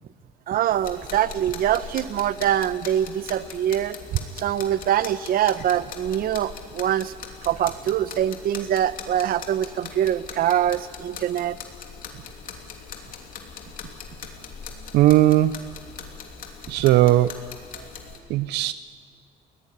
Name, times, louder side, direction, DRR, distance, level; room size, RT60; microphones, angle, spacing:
voice 1, 0.5-4.0 4.4-7.1 7.4-11.6 17.8-17.9, right 11 dB, 60° right, 15 dB, 0.9 m, -24 dB
sound 1, 0.7-18.2, left 6 dB, 55° left, 3.1 m, -40 dB
voice 2, 14.9-15.6 16.7-17.4 18.3-18.7, right 15 dB, 85° right, 14 dB, 0.5 m, -18 dB
21.0 x 17.5 x 9.9 m, 2.1 s
cardioid pair, 110°, 17 cm